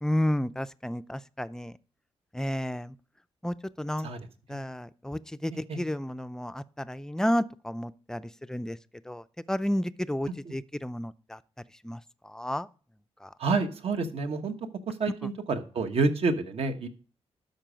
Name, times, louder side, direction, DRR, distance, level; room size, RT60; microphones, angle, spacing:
voice 1, 0.0-1.8 2.3-2.9 3.4-4.1 4.5-8.8 9.1-11.4 11.8-12.7 13.2-13.3, left 1 dB, 5° left, 0.4 m, -32 dB
voice 2, 13.4-14.5 14.9-16.9, right 3 dB, 65° right, 1.3 m, -29 dB
12.0 x 5.4 x 5.1 m
cardioid pair, 110°, 11 cm